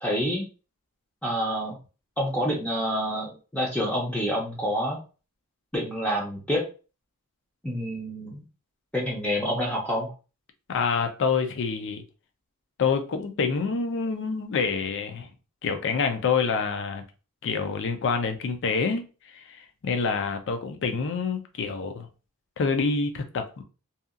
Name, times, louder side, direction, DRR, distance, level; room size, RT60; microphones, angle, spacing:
voice 1, 0.0-0.5 1.2-1.8 2.2-5.0 5.7-6.7 7.6-8.4 8.9-10.1, equal, 5° left, 0.5 m, -27 dB
voice 2, 10.7-12.0 12.8-15.3 15.6-17.0 17.4-19.0 19.3-22.1 22.6-23.6, left 5 dB, 55° left, 0.4 m, -27 dB
2.7 x 2.3 x 2.4 m
head